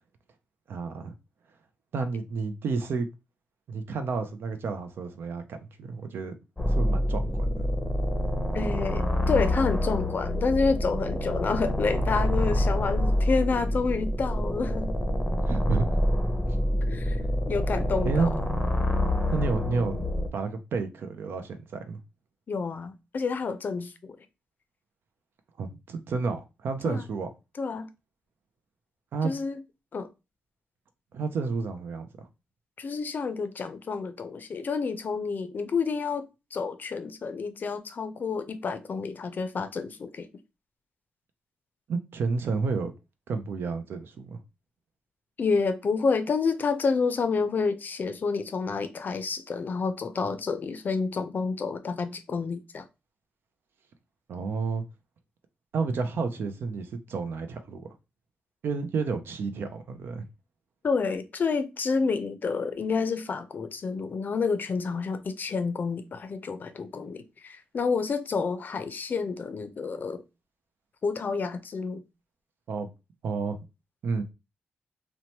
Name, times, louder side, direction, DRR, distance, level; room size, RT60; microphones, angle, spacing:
voice 1, 0.7-1.1 1.9-3.1 3.7-6.3 6.7-7.6 15.5-16.0 16.5-16.6 18.0-18.4 19.3-20.1 20.3-22.0 25.6-27.3 29.1-29.3 31.1-32.1 41.9-42.9 43.3-44.4 54.3-54.8 55.7-57.8 58.6-60.2 72.7-72.9 73.2-73.6 74.0-74.2, right 4 dB, 70° right, 0.5 m, -30 dB
sound 1, 6.6-20.3, left 1 dB, 10° left, 0.7 m, -27 dB
voice 2, 8.5-15.0 16.9-17.2 17.5-18.3 22.5-24.2 26.8-27.0 27.6-27.9 29.2-29.6 29.9-30.1 32.8-40.3 45.4-52.8 60.8-70.2 71.0-72.0, left 4 dB, 50° left, 0.5 m, -29 dB
2.9 x 2.1 x 2.8 m
cardioid pair, 60°, 4 cm